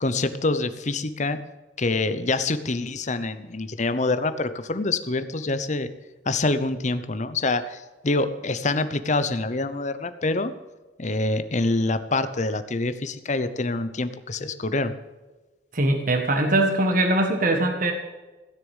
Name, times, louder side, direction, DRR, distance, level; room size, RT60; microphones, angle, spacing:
voice 1, 0.0-1.4 1.8-5.9 6.3-10.5 11.0-14.9, left 2 dB, 45° left, 12 dB, 0.9 m, -26 dB
voice 2, 15.7-17.9, right 1 dB, 50° right, 4 dB, 1.6 m, -21 dB
16.5 x 6.7 x 9.0 m, 1.2 s
head